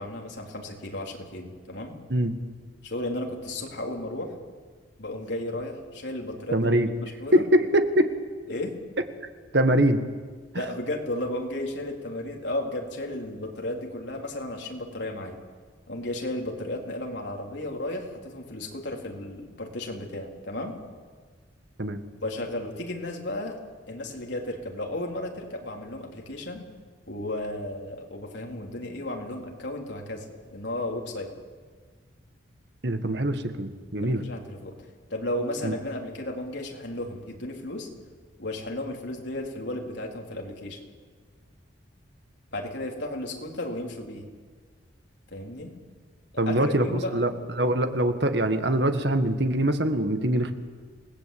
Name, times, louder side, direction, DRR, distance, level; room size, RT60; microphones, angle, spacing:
voice 1, 0.0-2.0 2.8-4.3 5.0-6.7 7.0-7.4 8.5-8.7 10.5-15.4 15.9-20.7 22.2-23.6 23.9-26.6 27.1-31.3 34.0-34.8 35.1-37.9 38.4-40.8 42.5-44.3 45.3-45.7 46.5-47.2, left 1 dB, 65° left, 1 dB, 3.9 m, -34 dB
voice 2, 6.5-6.9 7.3-8.1 9.5-10.0 21.8-22.0 32.8-34.2 35.6-35.7 46.4-50.5, right 1 dB, 60° right, 8 dB, 1.6 m, -23 dB
28.0 x 19.0 x 8.6 m, 1.5 s
head